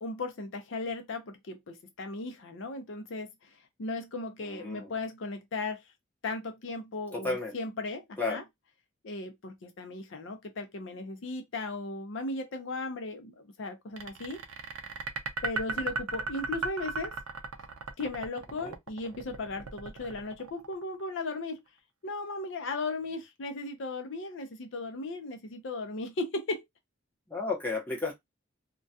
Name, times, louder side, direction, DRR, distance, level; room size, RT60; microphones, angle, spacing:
voice 1, 0.0-5.8 6.2-8.4 9.0-14.4 15.4-17.1 18.0-21.6 22.0-26.6, left 2 dB, 65° left, 0.5 m, -36 dB
voice 2, 4.5-4.9 7.1-7.5 8.2-8.4 18.6-18.7 27.3-28.1, left 3 dB, 10° left, 0.7 m, -32 dB
sound 1, 14.0-21.1, right 4 dB, 85° right, 0.4 m, -36 dB
2.2 x 2.2 x 2.6 m
head